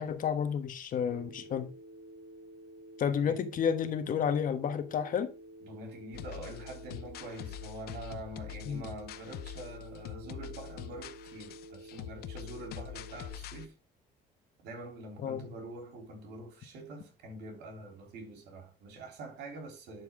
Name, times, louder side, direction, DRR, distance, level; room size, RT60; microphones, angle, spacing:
voice 1, 0.0-1.7 3.0-5.3 8.6-8.8 15.2-15.5, left 7 dB, 55° left, 1.3 m, -31 dB
Telephone, 1.1-13.3, right 1 dB, 35° right, 3.2 m, -51 dB
voice 2, 5.6-13.7 14.6-20.0, right 2 dB, 80° right, 3.6 m, -45 dB
sound 1, 6.1-13.7, left 11 dB, 70° left, 0.7 m, -44 dB
11.0 x 4.8 x 3.6 m
cardioid pair, 110°, 17 cm